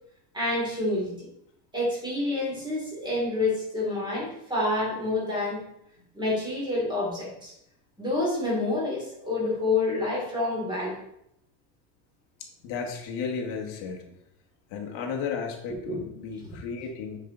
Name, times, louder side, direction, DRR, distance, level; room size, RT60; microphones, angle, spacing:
voice 1, 0.3-1.3 1.7-5.6 6.1-7.5 8.0-11.0 15.9-16.0, left 2 dB, 10° right, -5 dB, 2.7 m, -28 dB
voice 2, 12.4-14.0 14.7-17.2, left 5 dB, 70° left, 1 dB, 1.4 m, -34 dB
8.1 x 4.8 x 3.9 m, 0.77 s
cardioid pair, 160°, 45 cm